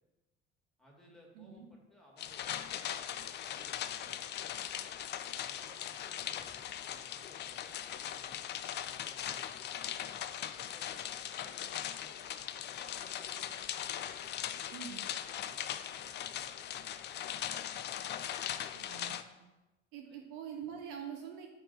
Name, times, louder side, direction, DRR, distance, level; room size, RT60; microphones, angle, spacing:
voice 1, 0.8-4.3 5.2-10.1 10.5-14.1 14.7-16.8 20.1-20.2, equal, ahead, -3 dB, 2.2 m, -61 dB
voice 2, 1.3-1.7 14.7-15.1 18.7-19.2 19.9-21.5, right 8 dB, 55° right, 2 dB, 1.0 m, -45 dB
sound 1, 2.2-19.2, left 10 dB, 30° left, 0.4 m, -40 dB
5.4 x 4.5 x 5.5 m, 1.0 s
figure-of-eight pair, 55°, 35 cm